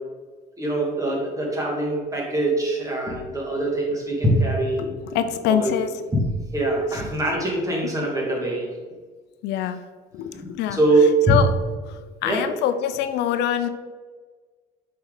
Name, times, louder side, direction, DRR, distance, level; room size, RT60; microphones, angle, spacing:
voice 1, 0.6-4.8 5.5-5.7 6.1-8.7 10.4-11.4 12.2-12.5, right 2 dB, 20° right, -2 dB, 2.1 m, -23 dB
voice 2, 4.8-5.9 9.4-9.8 10.1-10.8 11.3-11.5 12.2-13.7, left 9 dB, 85° left, 10 dB, 0.5 m, -24 dB
7.1 x 4.7 x 3.9 m, 1.4 s
cardioid pair, 110°, 17 cm